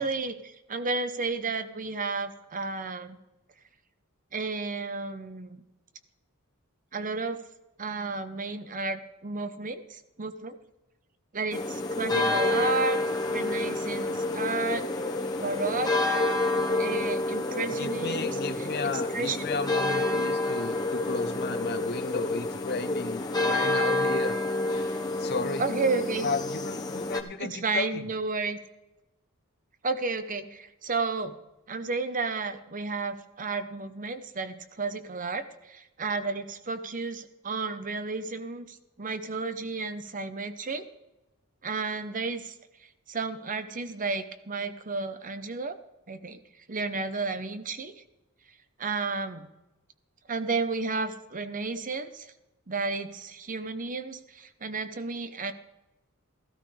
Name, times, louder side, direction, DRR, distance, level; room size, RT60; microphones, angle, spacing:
voice 1, 0.0-3.2 4.3-5.6 6.9-7.4 7.8-10.6 11.3-13.0 13.3-14.9 15.4-16.1 16.8-18.7 19.1-19.4 25.6-26.3 27.4-28.6 29.8-31.3 31.7-40.8 41.6-42.5 43.1-45.8 46.1-46.4 46.7-48.0 48.8-49.5 50.3-52.3 52.7-55.5, right 4 dB, 40° right, 11 dB, 0.9 m, -32 dB
sound 1, 11.5-27.2, left 2 dB, 20° left, 1.2 m, -28 dB
voice 2, 17.7-24.4 25.2-25.6 26.2-28.0, left 4 dB, 50° left, 9 dB, 0.8 m, -34 dB
15.0 x 13.0 x 3.4 m, 1.0 s
head